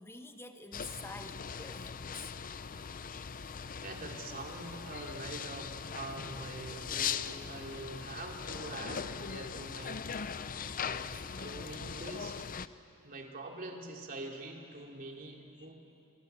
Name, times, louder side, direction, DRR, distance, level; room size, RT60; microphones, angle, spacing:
voice 1, 0.0-2.3 15.6-15.7, left 2 dB, 10° left, 5 dB, 1.4 m, -47 dB
sound 1, 0.7-12.7, left 6 dB, 40° left, 0.6 m, -40 dB
voice 2, 3.8-10.2 10.8-12.4 13.0-15.8, right 2 dB, 40° right, 1 dB, 3.1 m, -44 dB
28.0 x 25.5 x 8.2 m, 2.7 s
head